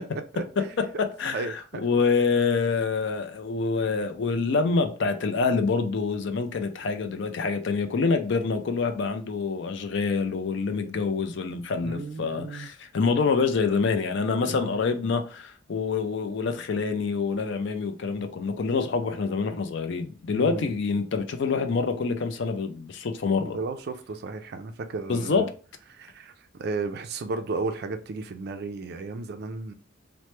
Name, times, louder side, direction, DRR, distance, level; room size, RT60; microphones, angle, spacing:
voice 1, 0.3-1.9 11.8-12.7 14.5-14.8 20.3-20.7 23.4-25.5 25.9-29.7, right 3 dB, 50° right, 0.3 m, -34 dB
voice 2, 1.2-23.6 25.1-25.4, left 4 dB, 55° left, 0.4 m, -26 dB
3.0 x 2.1 x 3.1 m
head